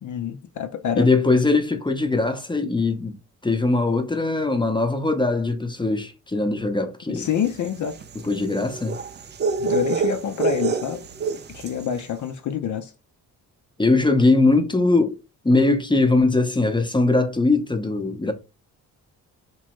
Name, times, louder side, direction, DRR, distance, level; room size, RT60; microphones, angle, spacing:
voice 1, 0.0-1.1 7.1-8.0 9.6-11.0 11.5-12.9, left 8 dB, 50° left, 0.5 m, -27 dB
voice 2, 1.0-3.2 3.4-7.3 8.2-9.0 13.8-15.2 15.4-18.3, left 3 dB, 10° left, 0.7 m, -21 dB
sound 1, 7.3-11.9, right 5 dB, 30° right, 0.4 m, -27 dB
3.0 x 2.1 x 3.0 m
supercardioid pair, 60°, 38 cm